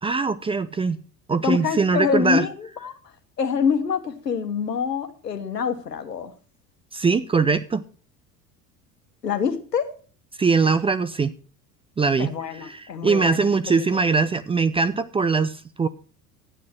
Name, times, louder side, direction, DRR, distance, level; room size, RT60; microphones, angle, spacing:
voice 1, 0.0-1.0 1.3-2.5 6.9-7.8 10.4-11.3 12.0-12.3 12.7-15.9, right 4 dB, 10° right, 0.5 m, -21 dB
voice 2, 1.4-3.0 3.4-6.3 9.2-9.9 12.2-14.0, left 6 dB, 80° left, 1.3 m, -26 dB
12.5 x 9.4 x 4.4 m
figure-of-eight pair, 70°, 48 cm